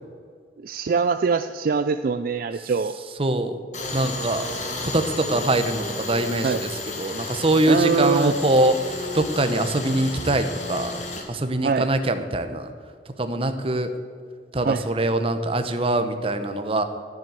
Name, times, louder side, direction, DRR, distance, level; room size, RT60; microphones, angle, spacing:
voice 1, 0.6-2.9 6.4-6.6 7.7-8.4 11.6-11.9 14.6-14.8, right 5 dB, 55° right, 10 dB, 0.4 m, -23 dB
voice 2, 3.2-3.6 3.9-4.5 4.8-6.7 7.0-11.0 11.3-12.7 13.2-13.9 14.5-16.8, right 1 dB, 30° right, 8 dB, 0.9 m, -23 dB
Tools, 3.7-11.2, left 2 dB, 45° left, 1.7 m, -33 dB
12.5 x 7.5 x 7.6 m, 2.1 s
head